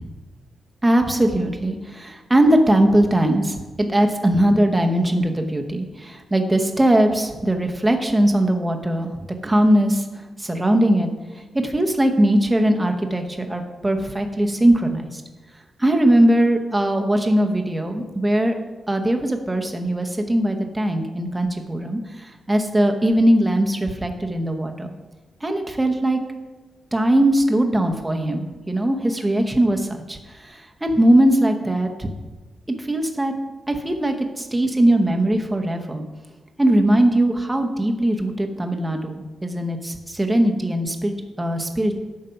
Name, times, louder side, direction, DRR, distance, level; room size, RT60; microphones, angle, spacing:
voice 1, 0.8-10.1 10.4-11.1 11.5-15.2 15.8-18.5 18.9-24.9 25.4-26.2 26.9-32.1 32.8-33.3 33.7-36.0 36.6-41.9, right 1 dB, 10° right, 4 dB, 0.9 m, -20 dB
9.1 x 6.5 x 5.7 m, 1.2 s
wide cardioid pair, 180°, 0 cm